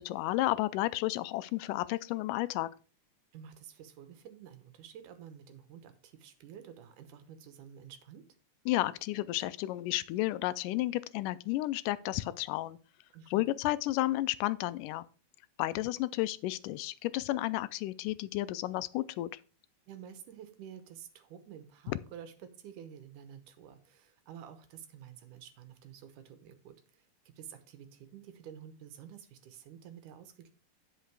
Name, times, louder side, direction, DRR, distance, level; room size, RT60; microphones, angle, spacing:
voice 1, 0.0-2.7 8.7-12.8 13.3-15.0 15.6-19.3, left 17 dB, 85° left, 2.1 m, -32 dB
voice 2, 3.3-8.3 13.1-13.5 19.9-30.5, right 9 dB, 75° right, 2.5 m, -50 dB
10.0 x 5.6 x 4.7 m
omnidirectional pair, 3.7 m